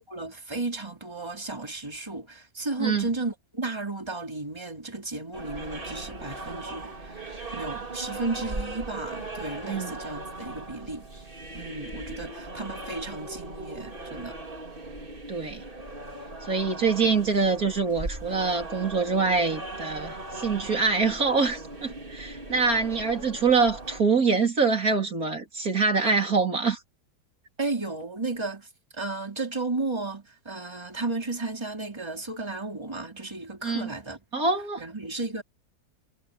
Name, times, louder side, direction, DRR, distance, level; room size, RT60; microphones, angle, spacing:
voice 1, 0.0-11.1 11.5-14.4 27.6-28.7 28.9-34.2 34.8-35.4, right 3 dB, 15° right, 3.8 m, -34 dB
sound 1, 5.3-24.0, right 2 dB, 30° right, 3.0 m, -39 dB
voice 2, 15.3-15.6 16.5-26.8 33.6-33.9 34.3-34.8, right 4 dB, 60° right, 4.1 m, -25 dB
omnidirectional pair, 1.7 m